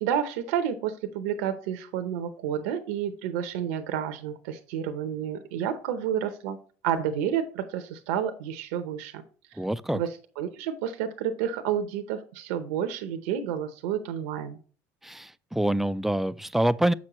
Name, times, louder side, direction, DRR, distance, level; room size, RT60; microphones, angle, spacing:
voice 1, 0.0-6.6 6.8-9.2 9.5-9.6 9.9-14.6, right 9 dB, 80° right, 0.7 m, -30 dB
voice 2, 9.6-10.0 15.0-16.9, right 1 dB, 5° right, 0.3 m, -26 dB
7.4 x 6.1 x 3.0 m
supercardioid pair, 90°, 8 cm